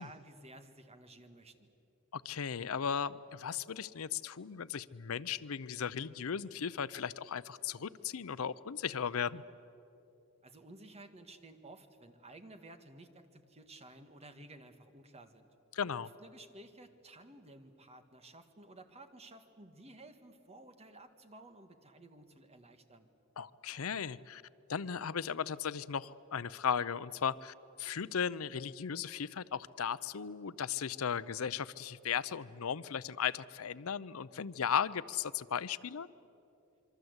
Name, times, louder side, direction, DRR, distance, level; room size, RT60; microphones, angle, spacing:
voice 1, 0.0-1.7 10.4-15.5 16.0-23.1, right 2 dB, 30° right, 8 dB, 1.6 m, -54 dB
voice 2, 2.1-9.4 15.7-16.1 23.4-24.4 24.7-36.1, left 7 dB, 75° left, 17 dB, 0.6 m, -36 dB
26.5 x 24.0 x 8.1 m, 2.9 s
head